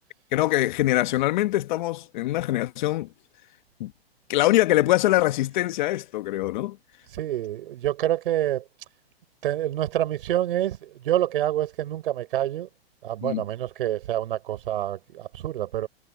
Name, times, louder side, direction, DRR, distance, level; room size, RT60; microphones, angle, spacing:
voice 1, 0.3-3.1 3.8-3.9 4.3-6.8 13.2-13.4, left 16 dB, 50° left, 1.4 m, -23 dB
voice 2, 7.1-8.7 9.4-12.7 13.0-15.9, right 13 dB, 60° right, 4.6 m, -27 dB
hypercardioid pair, 140°, 31 cm